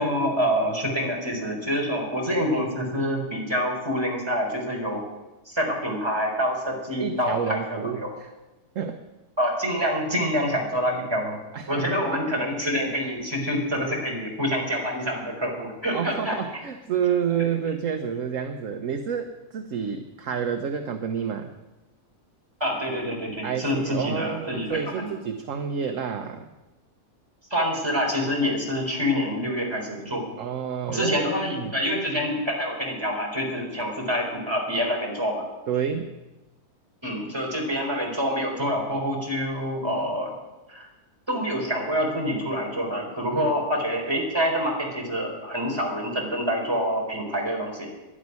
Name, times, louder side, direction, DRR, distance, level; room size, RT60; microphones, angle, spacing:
voice 1, 0.0-5.0 5.5-8.1 9.4-11.4 11.7-16.4 22.6-25.1 27.5-30.2 30.9-35.5 37.0-40.3 40.7-40.9 41.3-47.9, equal, 15° right, -1 dB, 4.0 m, -26 dB
voice 2, 7.0-8.3 8.7-9.0 11.5-11.9 15.9-21.5 23.4-26.5 30.4-31.2 31.6-31.7 35.7-36.1 43.3-43.5, right 7 dB, 60° right, 6 dB, 1.2 m, -29 dB
11.5 x 11.0 x 9.5 m, 1.1 s
omnidirectional pair, 1.6 m